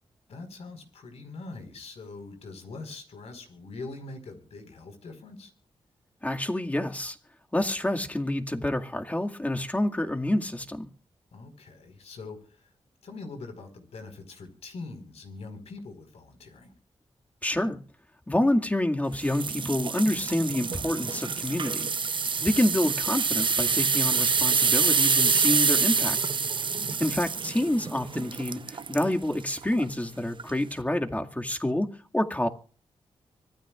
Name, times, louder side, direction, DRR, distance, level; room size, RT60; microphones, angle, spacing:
voice 1, 0.3-5.5 11.3-12.7 13.0-16.7 22.3-22.6 26.7-27.0, left 3 dB, 85° left, 4.8 m, -43 dB
voice 2, 6.2-7.2 7.5-10.9 17.4-17.8 18.3-21.9 22.4-26.2 27.0-32.5, left 1 dB, 15° left, 2.1 m, -28 dB
sound 1, 19.2-29.1 29.6-29.8 30.4-30.5, right 5 dB, 50° right, 0.7 m, -26 dB
25.0 x 16.0 x 2.5 m
cardioid pair, 65°, 11 cm